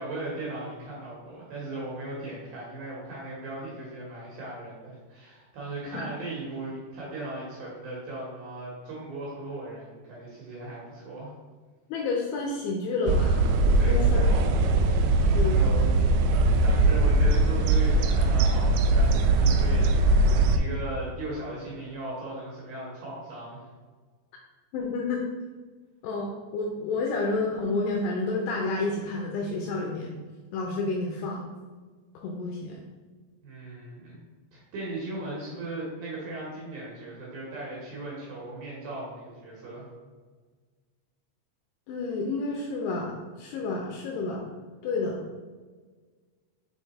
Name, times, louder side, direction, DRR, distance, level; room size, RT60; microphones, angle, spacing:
voice 1, 0.0-11.3 13.8-14.5 14.8-15.1 15.5-15.9 16.3-23.7 33.4-34.2 34.5-39.9, right 2 dB, 70° right, -6 dB, 2.3 m, -37 dB
voice 2, 11.9-13.4 13.9-14.2 15.3-15.6 24.7-25.2 26.0-30.1 30.5-31.5 32.2-32.8 41.9-44.4 44.8-45.2, left 3 dB, 80° left, 0 dB, 2.5 m, -30 dB
sound 1, 13.1-20.6, right 2 dB, 85° right, 2.5 m, -21 dB
6.4 x 3.6 x 4.1 m, 1.4 s
omnidirectional pair, 5.4 m